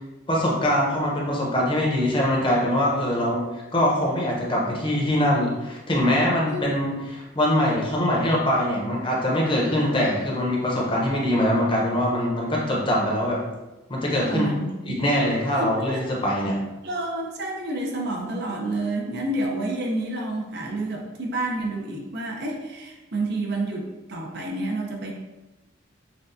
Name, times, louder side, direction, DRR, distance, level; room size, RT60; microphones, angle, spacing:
voice 1, 0.3-13.4 13.9-14.5 14.8-16.6, left 1 dB, 25° left, -3 dB, 0.8 m, -23 dB
voice 2, 6.4-6.9 14.3-15.0 15.5-16.0 16.8-25.1, right 2 dB, 55° right, 0 dB, 0.6 m, -29 dB
5.8 x 2.3 x 2.6 m, 1.1 s
head